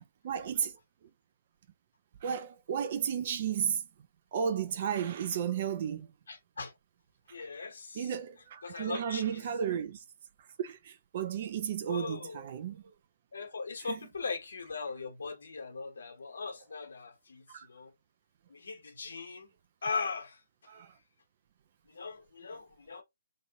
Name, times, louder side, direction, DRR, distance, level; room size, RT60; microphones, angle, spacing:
voice 1, 0.2-0.7 2.2-3.8 4.3-6.1 8.0-10.0 10.6-12.8 13.8-14.0 17.5-17.7 20.7-20.9, right 8 dB, 45° right, 0.5 m, -33 dB
voice 2, 6.3-6.7 7.3-8.1 8.6-9.4 11.8-12.4 13.3-17.9 18.5-19.5 19.8-20.4 21.9-23.0, left 4 dB, 65° left, 1.2 m, -39 dB
3.1 x 2.5 x 2.9 m
figure-of-eight pair, 135°, 0 cm